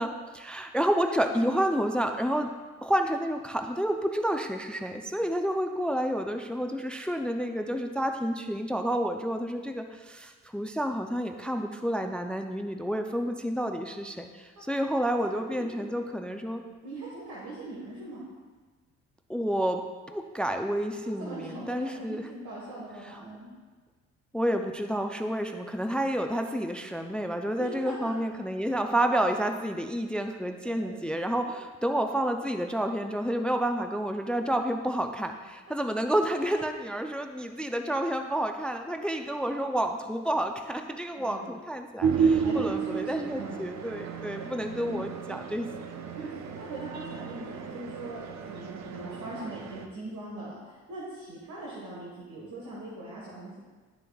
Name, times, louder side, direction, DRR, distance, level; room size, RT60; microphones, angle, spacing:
voice 1, 0.0-2.5 2.8-16.6 19.3-19.8 20.1-22.2 24.3-45.7, equal, 5° left, 6 dB, 0.4 m, -30 dB
voice 2, 15.2-16.0 16.8-18.2 21.2-23.5 27.6-28.1 30.6-31.1 36.5-36.6 41.1-41.5 42.2-43.6 44.8-45.0 46.1-53.6, right 1 dB, 80° right, -5 dB, 1.5 m, -41 dB
sound 1, 42.0-49.9, right 6 dB, 65° right, 0.7 m, -32 dB
11.0 x 6.7 x 2.3 m, 1.4 s
cardioid pair, 90°, 30 cm